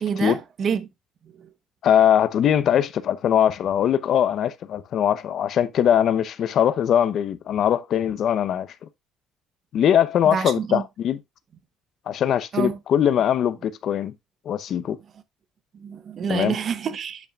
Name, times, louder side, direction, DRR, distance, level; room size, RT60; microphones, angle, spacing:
voice 1, 0.0-0.9 1.4-1.5 10.3-10.8 12.5-12.8 15.8-17.3, right 7 dB, 40° right, 1.0 m, -27 dB
voice 2, 1.8-8.7 9.7-11.2 12.1-14.1 14.5-15.0 16.3-16.6, left 9 dB, 55° left, 0.8 m, -21 dB
8.3 x 7.1 x 2.4 m
cardioid pair, 145°, 0 cm